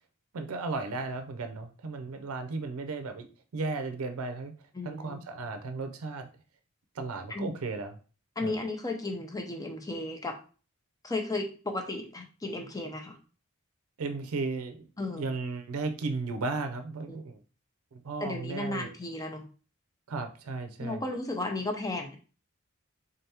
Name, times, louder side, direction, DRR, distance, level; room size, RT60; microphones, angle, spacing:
voice 1, 0.3-3.3 3.5-4.5 4.8-6.3 6.9-8.0 8.4-8.5 14.0-14.9 15.2-17.4 17.9-18.9 20.1-21.0, right 3 dB, 85° right, 8 dB, 0.5 m, -35 dB
voice 2, 4.7-5.2 7.3-7.6 8.4-10.4 11.0-13.2 15.0-15.3 17.1-17.2 18.2-19.4 20.8-22.2, left 2 dB, 15° left, 3 dB, 0.6 m, -34 dB
3.8 x 3.3 x 2.8 m, 0.36 s
head